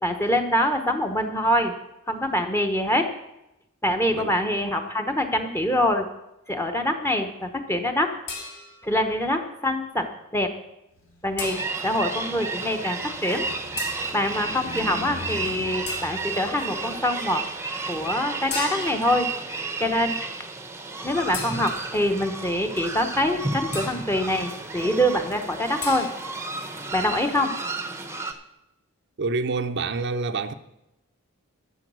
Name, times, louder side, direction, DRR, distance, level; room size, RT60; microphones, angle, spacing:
voice 1, 0.0-1.7 2.1-3.1 3.8-6.0 6.5-8.1 8.8-10.1 10.3-10.5 11.2-13.5 14.1-17.4 17.9-19.3 19.8-20.2 21.0-26.1 26.9-27.5, left 1 dB, 10° left, 0.9 m, -24 dB
sound 1, 8.3-9.0 11.4-12.0 13.8-14.2 15.9-16.4 18.5-19.2 21.3-22.1 23.7-24.2 25.8-26.1, left 4 dB, 50° left, 2.0 m, -36 dB
Car, 11.0-19.2, left 1 dB, 70° left, 3.0 m, -43 dB
sound 2, 11.4-28.3, right 3 dB, 10° right, 0.7 m, -32 dB
voice 2, 29.2-30.5, right 3 dB, 50° right, 0.5 m, -27 dB
12.0 x 7.0 x 6.2 m
head